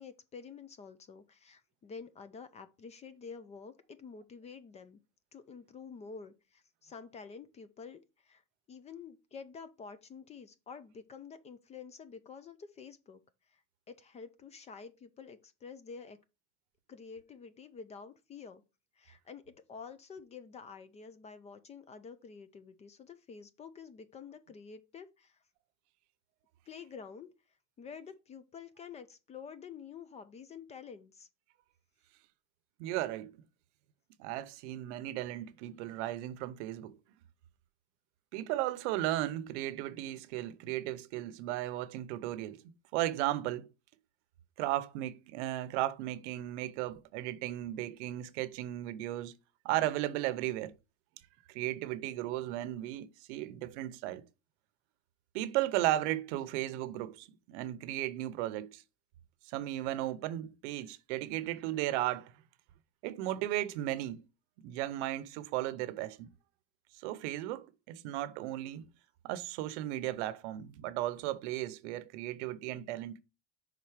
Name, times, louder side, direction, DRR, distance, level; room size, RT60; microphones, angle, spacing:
voice 1, 0.0-5.0 5.3-8.4 8.7-13.2 13.5-13.6 13.9-16.2 16.9-18.6 19.0-25.4 26.7-27.3 27.8-31.3, left 6 dB, 20° left, 0.4 m, -49 dB
voice 2, 32.8-33.4 34.2-37.0 38.3-42.6 42.9-43.7 44.6-49.3 49.6-50.7 51.5-54.2 55.3-58.8 59.5-62.3 63.0-64.2 64.6-66.3 67.0-68.9 69.2-73.2, right 14 dB, 85° right, 0.8 m, -35 dB
5.8 x 4.0 x 4.8 m
cardioid pair, 155°, 34 cm